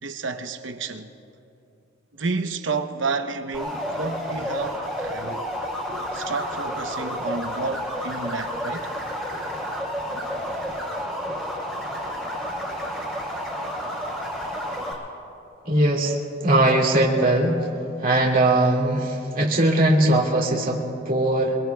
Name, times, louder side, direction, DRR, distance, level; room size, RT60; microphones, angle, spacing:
voice 1, 0.0-1.1 2.1-5.5 6.1-8.9, right 4 dB, 70° right, 0.9 m, -30 dB
sound 1, 3.5-14.9, equal, 5° left, 4.8 m, -30 dB
voice 2, 15.7-16.2 16.4-17.6 18.0-21.6, right 1 dB, 50° right, 2.1 m, -20 dB
25.0 x 23.0 x 2.3 m
head